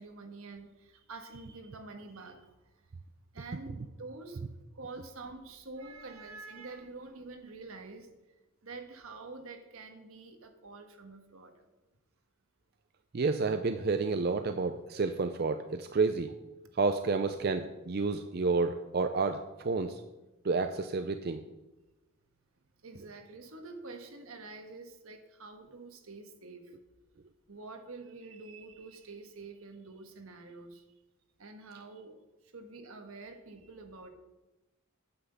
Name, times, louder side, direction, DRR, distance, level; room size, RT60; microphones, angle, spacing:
voice 1, 0.0-2.7 3.3-4.4 4.7-8.1 8.6-11.7 17.3-17.4 22.8-26.7 27.5-30.8 31.4-32.2 32.5-34.1, right 3 dB, 75° right, 6 dB, 1.4 m, -47 dB
voice 2, 13.1-16.3 16.7-20.0 20.4-21.4, right 4 dB, 45° right, 8 dB, 0.5 m, -30 dB
9.4 x 5.9 x 8.0 m, 1.1 s
head